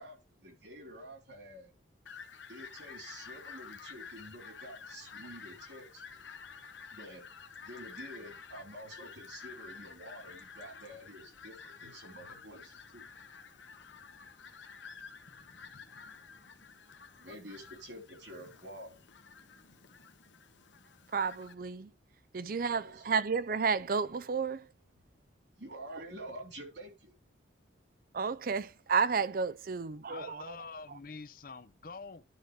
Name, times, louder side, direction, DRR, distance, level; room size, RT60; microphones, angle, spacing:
voice 1, 0.0-1.7 2.5-6.0 6.9-7.2 7.6-13.1 17.2-19.0 22.8-23.1 25.5-27.1, right 1 dB, 70° right, 3.2 m, -48 dB
Fowl, 2.1-21.5, left 6 dB, 75° left, 1.1 m, -51 dB
voice 2, 21.1-21.9 22.3-24.7 28.1-30.4, right 5 dB, 50° right, 0.5 m, -31 dB
voice 3, 30.1-32.2, left 4 dB, 50° left, 0.6 m, -46 dB
11.5 x 3.9 x 5.1 m
head